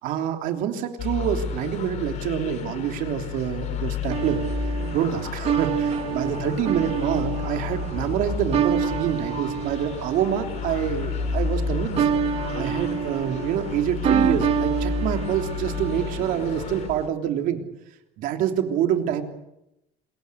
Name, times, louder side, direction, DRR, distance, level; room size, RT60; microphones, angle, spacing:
voice 1, 0.0-4.4 4.9-12.1 12.5-17.6 18.2-19.2, right 9 dB, 70° right, 6 dB, 3.2 m, -26 dB
sound 1, 1.0-16.9, left 6 dB, 50° left, 4.3 m, -31 dB
sound 2, 4.1-17.1, right 8 dB, 45° right, 1.4 m, -28 dB
27.5 x 21.5 x 8.1 m, 0.86 s
cardioid pair, 160°, 15 cm